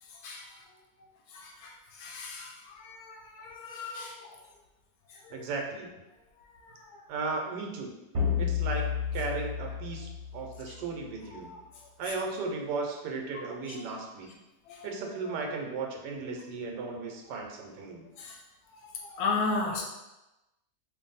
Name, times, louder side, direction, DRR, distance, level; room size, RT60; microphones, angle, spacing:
voice 1, 0.0-0.7 1.3-4.4 5.1-5.5 6.4-7.0 10.7-10.8 11.3-12.1 13.3-14.0 14.2-14.3 14.7-15.0 15.3-15.4 18.2-18.4 18.7-19.8, left 3 dB, 75° left, 1 dB, 1.0 m, -37 dB
voice 2, 5.3-5.9 7.1-7.9 8.4-8.8 9.1-11.5 12.0-14.3 14.8-18.1, right 4 dB, 80° right, 2 dB, 1.2 m, -35 dB
sound 1, 8.1-10.8, left 8 dB, 55° right, 0.9 m, -31 dB
2.6 x 2.6 x 3.9 m, 1.0 s
omnidirectional pair, 1.8 m